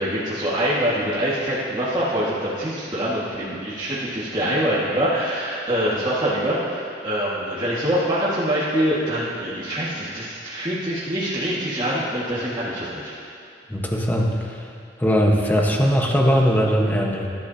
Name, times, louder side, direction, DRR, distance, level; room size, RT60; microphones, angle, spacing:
voice 1, 0.0-13.1, equal, 25° right, -9 dB, 1.9 m, -24 dB
voice 2, 13.7-14.6 15.0-17.3, equal, 10° left, -1 dB, 1.3 m, -20 dB
20.5 x 12.0 x 2.9 m, 2.5 s
head